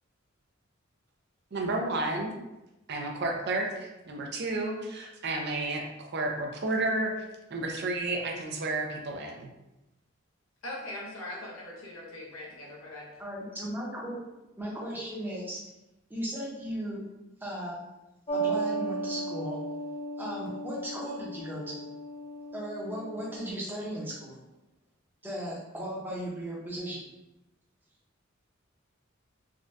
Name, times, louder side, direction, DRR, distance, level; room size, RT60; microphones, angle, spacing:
voice 1, 1.5-2.3 2.9-7.1 7.5-9.5, right 2 dB, 55° right, 1 dB, 0.5 m, -31 dB
voice 2, 10.6-13.2, left 1 dB, 85° left, -2 dB, 0.7 m, -41 dB
voice 3, 13.2-14.2 14.6-15.6 16.1-17.0 17.4-17.8 18.3-19.6 20.2-21.8 22.5-24.4 25.2-27.1, right 1 dB, 10° right, -4 dB, 0.7 m, -36 dB
sound 1, 18.3-23.5, right 3 dB, 25° left, 0.3 m, -35 dB
3.5 x 2.2 x 2.6 m, 0.96 s
head